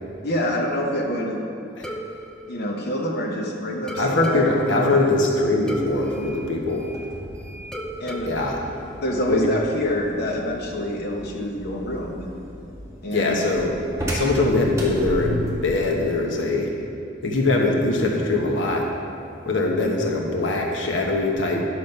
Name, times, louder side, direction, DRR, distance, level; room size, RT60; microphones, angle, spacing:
voice 1, 0.2-1.3 2.5-5.0 8.0-8.3 9.0-12.2 13.0-13.4, left 1 dB, 60° left, -1 dB, 1.1 m, -26 dB
sound 1, 1.8-3.4 3.9-7.3 7.7-9.7, right 1 dB, 5° left, 0.6 m, -37 dB
voice 2, 4.0-6.9 8.2-8.6 9.3-9.5 13.1-13.8 14.1-16.7 17.2-18.9 19.4-21.6, left 2 dB, 80° left, 0 dB, 1.1 m, -22 dB
sound 2, 5.8-15.7, equal, 15° right, 2.1 m, -35 dB
10.5 x 6.3 x 5.4 m, 2.6 s
head